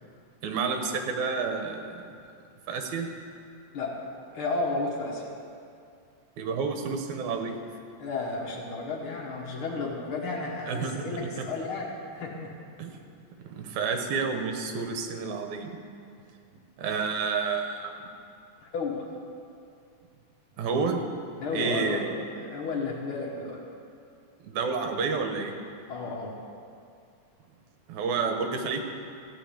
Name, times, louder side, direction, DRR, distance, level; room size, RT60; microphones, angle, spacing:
voice 1, 0.4-2.0 2.7-3.1 6.4-7.6 10.7-11.5 12.8-12.9 13.4-15.8 16.8-18.1 20.6-21.0 21.5-22.1 24.4-25.5 27.9-28.8, right 5 dB, 80° right, 5 dB, 2.2 m, -30 dB
voice 2, 4.3-5.2 8.0-12.5 18.6-19.1 21.4-22.0 22.3-23.6 25.9-26.3, left 3 dB, 50° left, -2 dB, 1.9 m, -32 dB
14.0 x 4.8 x 8.5 m, 2.5 s
omnidirectional pair, 3.5 m